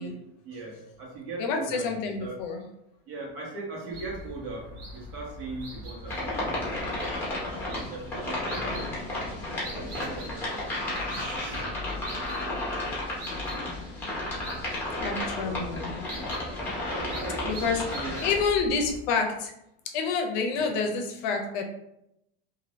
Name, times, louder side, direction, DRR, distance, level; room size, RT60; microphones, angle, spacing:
voice 1, 0.0-2.4 3.1-7.3 7.7-11.7 15.0-15.8 16.9-18.3 20.5-20.7, right 3 dB, 70° right, -3 dB, 1.3 m, -40 dB
voice 2, 1.4-2.6 15.0-15.9 17.5-19.5 19.9-21.6, left 5 dB, 50° left, 3 dB, 0.6 m, -28 dB
sound 1, 3.9-19.0, left 1 dB, 45° right, 0.9 m, -42 dB
sound 2, 6.1-18.4, left 1 dB, 5° left, 0.6 m, -33 dB
2.6 x 2.6 x 3.1 m, 0.82 s
supercardioid pair, 170°, 30 cm